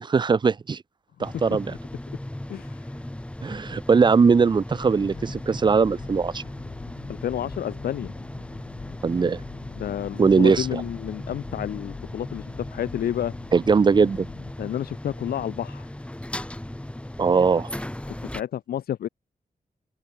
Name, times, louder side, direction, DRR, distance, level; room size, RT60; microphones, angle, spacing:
voice 1, 0.0-0.8 1.2-1.7 3.4-6.4 9.0-9.4 10.2-10.8 13.5-14.3 17.2-17.7, right 5 dB, 30° right, 0.4 m, -20 dB
sound 1, 1.2-18.4, left 1 dB, 5° left, 3.0 m, -37 dB
voice 2, 2.5-2.8 7.1-8.1 9.8-13.3 14.6-15.9 18.1-19.1, left 10 dB, 90° left, 0.4 m, -30 dB
sound 2, 4.8-14.5, left 8 dB, 70° left, 1.0 m, -44 dB
open air
wide cardioid pair, 155°, 15 cm